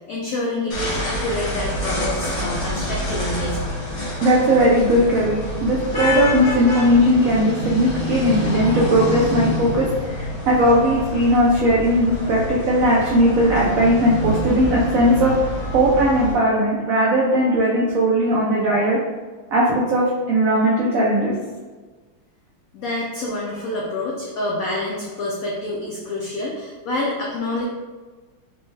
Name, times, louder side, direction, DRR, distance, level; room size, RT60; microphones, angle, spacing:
voice 1, 0.1-3.8 22.7-27.6, left 2 dB, 85° left, -3 dB, 0.7 m, -27 dB
sound 1, 0.7-16.3, equal, 55° left, 1.5 m, -27 dB
voice 2, 4.2-15.3 15.7-19.0 19.5-21.3, equal, 85° right, -4 dB, 0.7 m, -18 dB
4.2 x 2.2 x 3.1 m, 1.4 s
omnidirectional pair, 2.1 m